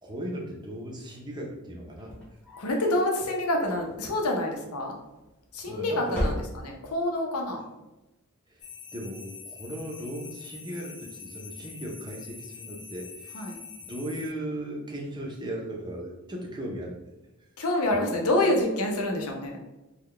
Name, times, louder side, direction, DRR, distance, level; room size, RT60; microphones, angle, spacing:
voice 1, 0.0-2.1 5.7-6.4 8.5-8.6 8.9-13.5 13.8-17.1 17.9-18.0, right 1 dB, 20° right, -1 dB, 0.6 m, -37 dB
sound 1, 2.0-3.1 3.6-4.3 5.2-5.7 6.0-7.0, equal, 5° left, 0.9 m, -35 dB
voice 2, 2.6-5.0 5.5-6.3 6.6-7.6 13.3-13.6 17.6-19.6, left 1 dB, 85° left, 1 dB, 0.7 m, -27 dB
sound 2, 8.6-14.3, left 5 dB, 65° left, 1.0 m, -45 dB
3.8 x 2.2 x 3.2 m, 1.0 s
head